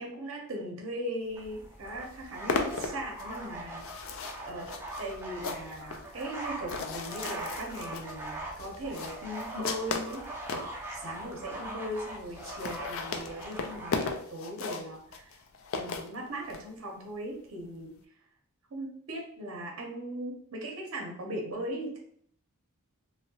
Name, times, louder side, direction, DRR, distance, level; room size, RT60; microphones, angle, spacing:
voice 1, 0.0-3.9 4.4-4.7 5.0-10.7 10.9-15.3 15.7-17.9 18.7-22.0, right 1 dB, 60° right, 1 dB, 0.6 m, -39 dB
sound 1, 1.4-14.1, right 1 dB, 10° right, 0.4 m, -42 dB
sound 2, 1.5-1.6 1.9-10.7 11.3-11.4 11.6-11.7 11.9-12.0 12.2-16.6, left 4 dB, 60° left, 0.3 m, -36 dB
2.7 x 2.0 x 2.7 m, 0.63 s
head